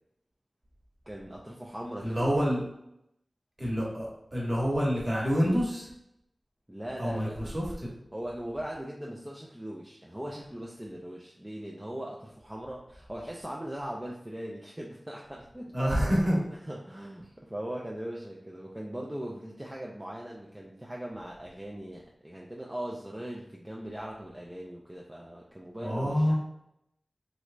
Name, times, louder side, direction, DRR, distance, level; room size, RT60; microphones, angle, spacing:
voice 1, 1.1-2.3 6.7-7.4 8.1-15.9 16.7-26.3, right 1 dB, 15° right, -3 dB, 0.4 m, -40 dB
voice 2, 2.0-2.6 3.6-5.9 7.0-7.9 15.7-16.4 25.8-26.3, equal, 35° right, -4 dB, 1.1 m, -27 dB
3.1 x 3.1 x 2.5 m, 0.79 s
wide cardioid pair, 80°, 0 cm